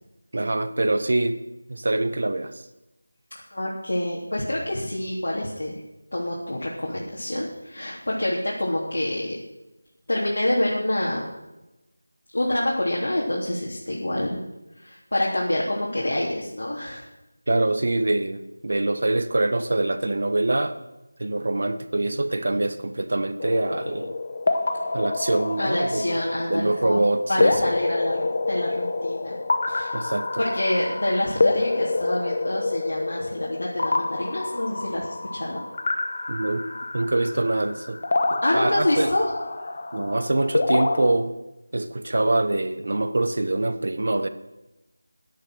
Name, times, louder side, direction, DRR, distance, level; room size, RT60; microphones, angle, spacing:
voice 1, 0.3-1.4 1.7-2.6 17.5-20.8 21.2-24.2 24.9-26.2 26.5-27.6 29.9-30.4 36.3-36.7 36.9-38.0 38.3-39.1 39.9-41.3 41.7-44.3, right 2 dB, 45° right, 11 dB, 1.0 m, -24 dB
voice 2, 3.5-5.7 6.1-9.3 10.1-11.2 12.3-14.4 14.8-17.0 25.6-27.0 27.3-29.4 29.7-30.0 30.4-35.6 38.4-39.3, left 1 dB, 75° left, -5 dB, 3.4 m, -27 dB
sound 1, 23.4-41.1, left 3 dB, 30° left, 0.9 m, -27 dB
11.5 x 10.5 x 6.3 m, 0.97 s
figure-of-eight pair, 180°, 0 cm